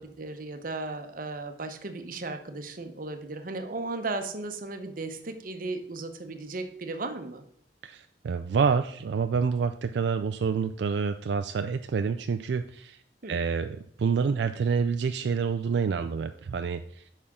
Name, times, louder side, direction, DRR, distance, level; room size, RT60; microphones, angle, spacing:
voice 1, 0.0-7.4 13.2-13.4, right 3 dB, 50° right, 7 dB, 0.8 m, -36 dB
voice 2, 7.8-13.0 13.3-17.0, right 5 dB, 80° right, 8 dB, 0.3 m, -28 dB
8.6 x 5.5 x 3.7 m, 0.63 s
head